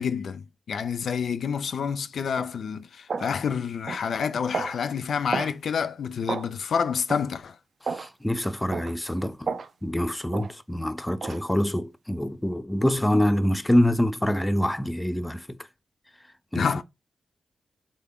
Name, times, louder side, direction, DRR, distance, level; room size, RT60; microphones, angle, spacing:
voice 1, 0.0-7.6 16.5-16.8, left 6 dB, 75° left, 0.3 m, -28 dB
sound 1, 2.4-2.5 3.1-3.3 3.9-4.1 4.5-4.8 5.3-5.5 6.3-6.5 7.1-7.3 7.8-8.1 8.7-8.9 9.5-9.7 10.3-10.5 11.2-11.4, right 5 dB, 65° right, 0.3 m, -31 dB
voice 2, 7.8-9.5 9.8-15.6 16.5-16.7, left 1 dB, 10° left, 0.4 m, -25 dB
3.3 x 2.1 x 3.6 m
cardioid pair, 65°, 0 cm